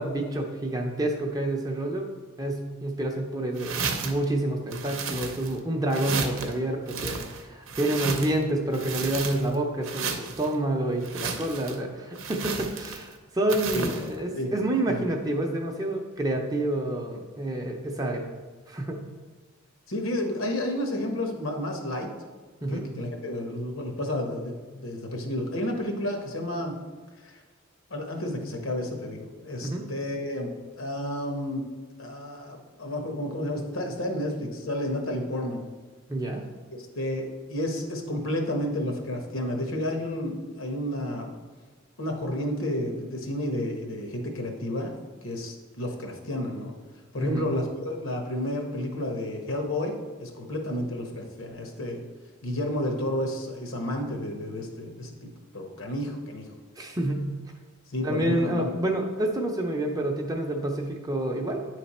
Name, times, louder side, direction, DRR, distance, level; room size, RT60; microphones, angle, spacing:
voice 1, 0.0-2.1 2.4-18.2 18.7-19.0 22.6-22.9 29.6-29.9 36.1-36.4 47.2-47.5 56.8-57.3 58.0-61.7, right 1 dB, 15° right, 2 dB, 0.6 m, -28 dB
sound 1, 3.6-4.2 4.7-5.6 5.9-6.5 6.9-8.4 8.7-9.6 9.8-10.5 11.0-11.8 12.2-13.1 13.5-14.1, right 5 dB, 70° right, 0.7 m, -33 dB
voice 2, 19.9-22.1 22.7-26.8 27.2-27.4 27.9-31.7 32.0-35.6 36.7-41.3 42.0-44.9 45.2-46.7 47.1-52.0 52.4-56.5 57.9-58.7, left 1 dB, 75° left, 2 dB, 1.1 m, -31 dB
9.2 x 3.3 x 4.2 m, 1.4 s
head